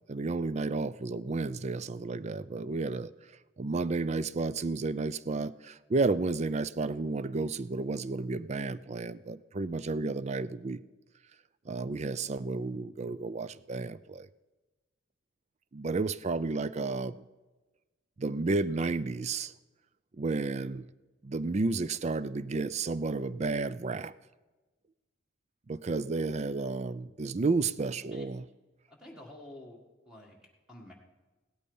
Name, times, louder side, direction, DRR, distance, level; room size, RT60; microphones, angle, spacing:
voice 1, 0.1-3.1 3.6-10.8 11.7-14.3 15.7-17.2 18.2-19.5 20.1-20.9 21.2-24.1 25.7-28.4, right 3 dB, 30° right, 16 dB, 0.4 m, -32 dB
voice 2, 27.9-28.3 28.9-29.8 30.1-30.9, left 1 dB, 5° right, -2 dB, 1.7 m, -50 dB
17.0 x 12.5 x 5.4 m, 1.2 s
head